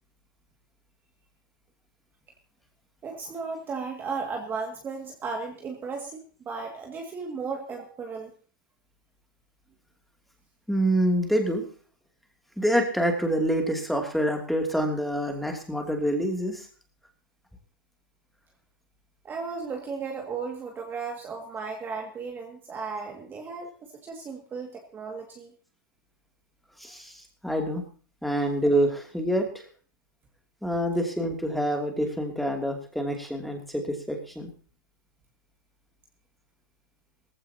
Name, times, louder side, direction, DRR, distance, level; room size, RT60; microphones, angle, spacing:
voice 1, 3.0-8.3 19.2-25.5, right 4 dB, 20° right, 2 dB, 2.1 m, -35 dB
voice 2, 10.7-11.6 12.6-16.7 26.8-27.8 28.2-29.6 30.6-34.5, equal, ahead, 3 dB, 2.7 m, -26 dB
18.0 x 15.5 x 2.9 m, 0.39 s
hypercardioid pair, 135°, 11 cm